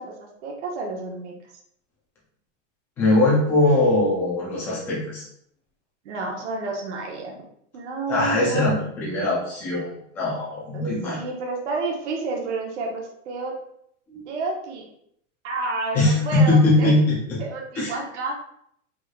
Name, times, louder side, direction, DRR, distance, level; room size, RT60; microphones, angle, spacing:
voice 1, 0.0-1.3 6.0-7.4 7.7-8.7 10.7-10.9 11.2-13.6 14.3-14.9 15.4-16.9 17.4-18.4, right 3 dB, 65° right, 0 dB, 1.2 m, -30 dB
voice 2, 3.0-5.2 8.1-9.9 10.1-11.2 14.1-14.2 15.9-17.4 17.8-17.9, left 2 dB, 5° left, -6 dB, 0.4 m, -21 dB
4.6 x 4.5 x 2.3 m, 0.70 s
supercardioid pair, 175°, 38 cm